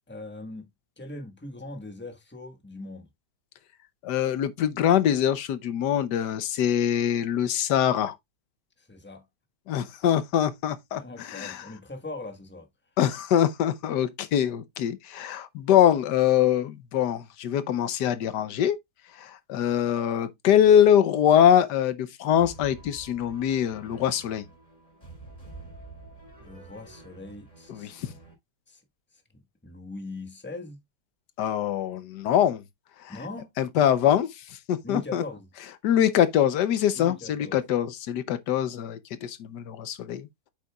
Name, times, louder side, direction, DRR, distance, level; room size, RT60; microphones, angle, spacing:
voice 1, 0.1-0.7 1.0-3.1 8.8-9.2 10.9-12.7 26.4-28.1 28.7-28.8 29.1-30.8 33.1-33.5 34.8-35.5 36.9-37.6, left 2 dB, 5° left, 1.2 m, -40 dB
voice 2, 4.0-8.2 9.7-11.7 13.0-18.8 19.1-24.5 27.7-28.1 31.4-32.6 33.0-33.1 33.6-35.2 35.8-40.3, left 10 dB, 85° left, 1.4 m, -23 dB
sound 1, 22.4-28.3, right 3 dB, 25° left, 3.8 m, -48 dB
8.2 x 6.5 x 2.3 m
omnidirectional pair, 1.8 m